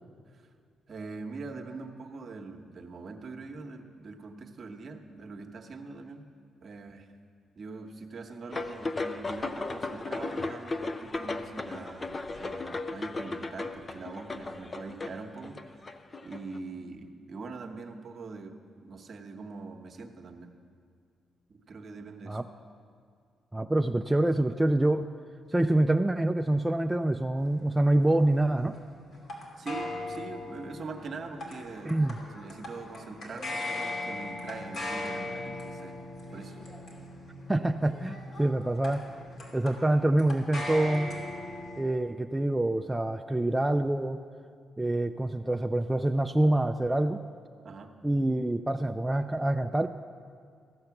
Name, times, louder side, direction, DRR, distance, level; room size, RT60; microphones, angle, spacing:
voice 1, 0.9-6.3 6.6-7.1 7.6-15.9 16.2-20.6 21.5-22.4 29.6-36.0 36.3-36.6 47.6-47.9, right 3 dB, 55° right, 4 dB, 1.0 m, -43 dB
sound 1, 8.5-16.6, left 3 dB, 35° left, 0.5 m, -36 dB
voice 2, 23.5-25.1 25.5-28.8 31.8-32.2 37.5-39.1 39.5-41.1 41.8-44.2 44.8-47.2 48.0-49.9, right 1 dB, 15° right, 6 dB, 0.4 m, -26 dB
sound 2, 27.4-41.8, left 2 dB, 60° left, 2.4 m, -39 dB
14.5 x 6.5 x 5.9 m, 2.2 s
supercardioid pair, 65°, 0 cm